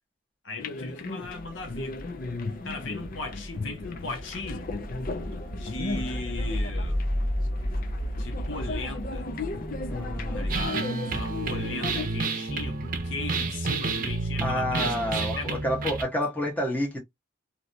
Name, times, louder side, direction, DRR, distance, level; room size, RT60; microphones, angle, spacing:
voice 1, 0.4-2.0 2.6-4.7 5.6-7.0 8.2-9.3 10.3-15.6, left 3 dB, 60° left, 0.9 m, -38 dB
sound 1, 0.6-12.1, left 3 dB, 45° left, 0.5 m, -36 dB
sound 2, 1.2-10.7, equal, 20° right, 1.2 m, -33 dB
voice 2, 9.9-10.5 14.4-15.3 15.6-17.0, equal, 10° left, 1.3 m, -29 dB
sound 3, 10.5-16.0, right 3 dB, 45° right, 0.7 m, -30 dB
3.1 x 2.8 x 2.6 m
head